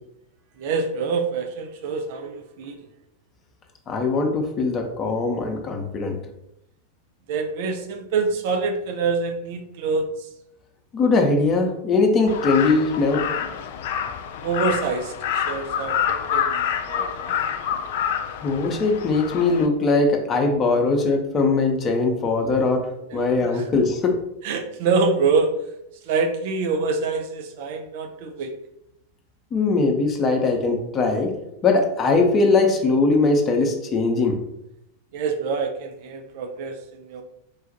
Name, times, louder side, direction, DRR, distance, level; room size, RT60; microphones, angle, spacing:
voice 1, 0.6-2.8 7.3-10.3 14.4-17.5 23.1-23.6 24.4-25.5 26.0-28.5 35.1-37.2, right 4 dB, 50° right, 5 dB, 0.5 m, -26 dB
voice 2, 3.9-6.2 10.9-13.2 18.4-24.2 29.5-31.3 31.6-34.4, left 3 dB, 25° left, 3 dB, 0.7 m, -21 dB
Crow, 12.3-19.7, left 8 dB, 55° left, 0.3 m, -27 dB
3.9 x 2.4 x 3.9 m, 0.82 s
figure-of-eight pair, 90°, 0 cm